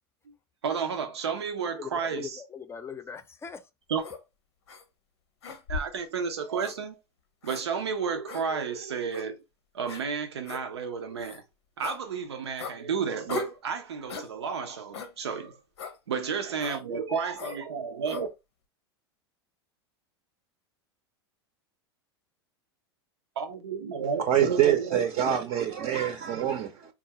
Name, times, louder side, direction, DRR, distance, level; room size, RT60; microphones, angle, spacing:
voice 1, 0.6-2.4 3.9-4.1 5.7-7.0 7.4-9.4 9.7-11.4 11.8-15.6 16.1-18.3 23.4-25.0, right 6 dB, 90° right, 0.5 m, -32 dB
voice 2, 1.8-3.6 16.9-17.2, left 6 dB, 20° left, 0.5 m, -40 dB
sound 1, 4.0-4.2 4.7-4.8 5.4-6.0 6.6-6.8 7.4-7.6 8.3-8.4 9.1-9.3 9.9-10.0 10.4-10.6 11.2-11.4 11.8-12.0 12.6-12.8 13.3-13.6 14.1-14.3 14.9-15.1 15.8-16.0 16.6-16.8 17.3-17.6 18.0-18.3, left 4 dB, 85° left, 0.7 m, -38 dB
voice 3, 24.3-26.9, right 10 dB, 45° right, 0.6 m, -25 dB
3.7 x 2.4 x 2.8 m
hypercardioid pair, 95°, 14 cm